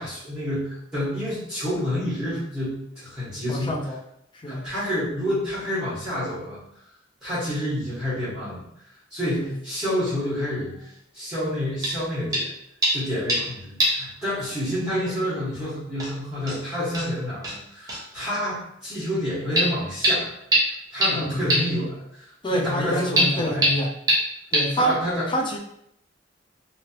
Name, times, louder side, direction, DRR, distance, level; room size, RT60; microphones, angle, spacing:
voice 1, 0.0-3.7 4.5-6.6 7.2-8.6 9.1-12.5 12.9-20.3 20.9-23.7 24.8-25.3, equal, 5° right, -13 dB, 1.4 m, -28 dB
voice 2, 3.5-4.0 4.3-4.7 9.4-9.5 21.1-21.4 22.4-23.9 24.5-25.0 25.3-25.6, equal, 25° left, 1 dB, 0.5 m, -27 dB
sound 1, 11.8-12.0 12.3-12.5 12.8-13.5 13.8-14.1 14.3-14.4 15.5-15.6 16.0-16.1 16.5-16.6 16.9-17.1 17.4-17.6 17.9-18.0 19.6-19.7 20.0-20.1 20.5-20.6 21.0-21.1 21.5-21.6 23.2-23.3 23.6-23.7 24.1-24.2 24.5-24.6, right 1 dB, 20° right, 0.9 m, -21 dB
3.0 x 2.7 x 2.9 m, 0.75 s
head